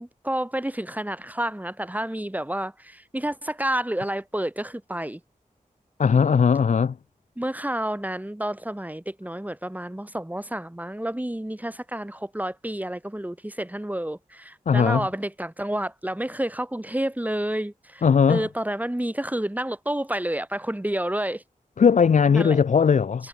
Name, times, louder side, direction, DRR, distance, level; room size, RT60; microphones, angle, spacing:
voice 1, 0.0-5.2 6.1-6.4 7.4-21.4 22.3-22.6 23.2-23.3, right 1 dB, 10° right, 5.9 m, -30 dB
voice 2, 6.0-6.9 14.7-15.1 18.0-18.4 21.8-23.3, left 6 dB, 60° left, 0.4 m, -18 dB
wide cardioid pair, 75°, 14 cm